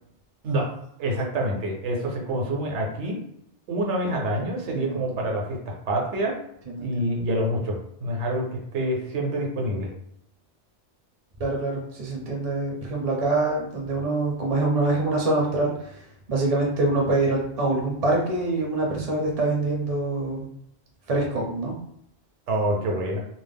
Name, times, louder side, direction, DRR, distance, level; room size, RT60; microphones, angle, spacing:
voice 1, 1.0-3.2 3.7-6.3 6.8-8.5 8.7-9.9 22.5-23.2, right 1 dB, 80° right, 0 dB, 1.0 m, -26 dB
voice 2, 11.4-15.9 16.3-20.4 21.1-21.7, right 2 dB, 45° right, -2 dB, 0.5 m, -25 dB
2.4 x 2.0 x 3.4 m, 0.73 s
omnidirectional pair, 1.2 m